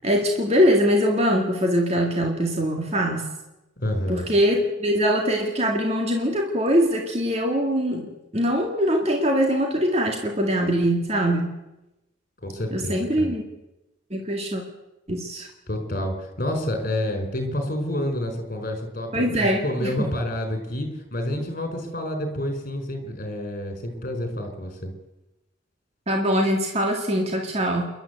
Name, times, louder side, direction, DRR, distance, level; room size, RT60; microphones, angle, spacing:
voice 1, 0.0-3.3 4.1-11.6 12.7-13.4 14.1-14.6 15.1-15.5 19.1-20.1 26.1-27.9, equal, 30° right, 2 dB, 2.1 m, -22 dB
voice 2, 3.8-4.3 12.4-13.3 15.7-24.9, left 1 dB, 40° left, 5 dB, 4.6 m, -29 dB
28.0 x 11.5 x 8.2 m, 0.97 s
head